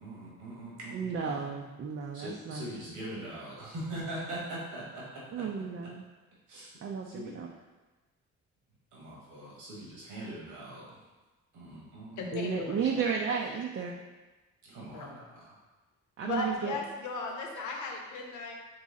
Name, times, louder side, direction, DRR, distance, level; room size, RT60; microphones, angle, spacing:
voice 1, 0.0-1.6 2.1-5.4 6.5-6.8 7.0-7.4 8.9-11.0 11.5-12.5 14.6-15.5, right 1 dB, 85° right, -5 dB, 1.4 m, -42 dB
voice 2, 0.9-2.6 5.3-6.0 6.8-7.5 12.3-14.0 16.2-16.8, right 6 dB, 45° right, 0 dB, 0.5 m, -33 dB
voice 3, 12.2-12.8 14.9-15.1 16.2-18.5, left 3 dB, 80° left, 1 dB, 0.8 m, -36 dB
4.1 x 3.1 x 3.7 m, 1.2 s
cardioid pair, 90°, 30 cm